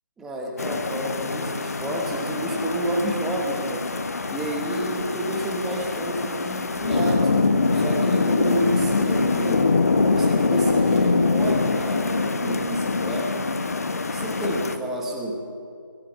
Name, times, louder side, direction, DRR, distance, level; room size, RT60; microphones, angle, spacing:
voice 1, 0.2-3.9 4.3-9.7 10.1-13.5 14.1-15.3, right 1 dB, 5° right, -1 dB, 1.4 m, -29 dB
sound 1, 0.6-14.8, left 3 dB, 45° left, 1.4 m, -24 dB
23.0 x 12.5 x 9.1 m, 2.4 s
figure-of-eight pair, 165°, 11 cm